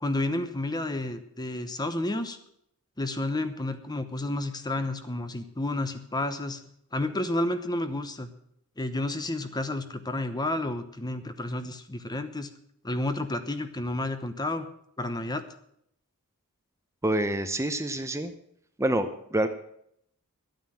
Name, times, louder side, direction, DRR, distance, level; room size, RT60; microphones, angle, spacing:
voice 1, 0.0-2.4 3.0-6.6 6.9-8.3 8.8-12.5 12.8-14.7 15.0-15.4, left 1 dB, 20° left, 10 dB, 0.9 m, -31 dB
voice 2, 17.0-18.3 18.8-19.5, right 1 dB, 15° right, 8 dB, 0.8 m, -27 dB
11.0 x 9.2 x 7.6 m, 0.70 s
head